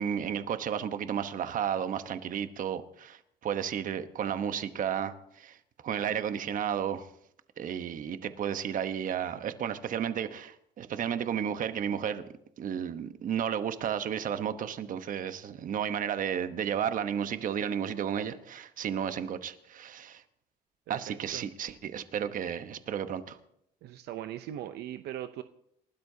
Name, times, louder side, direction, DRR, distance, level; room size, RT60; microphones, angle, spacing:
voice 1, 0.0-5.6 5.8-7.1 7.6-12.3 12.6-20.2 20.9-23.4, right 8 dB, 50° right, 1.1 m, -33 dB
voice 2, 20.9-21.4 23.8-25.4, right 12 dB, 75° right, 0.7 m, -40 dB
29.0 x 13.0 x 2.8 m
cardioid pair, 110°, 17 cm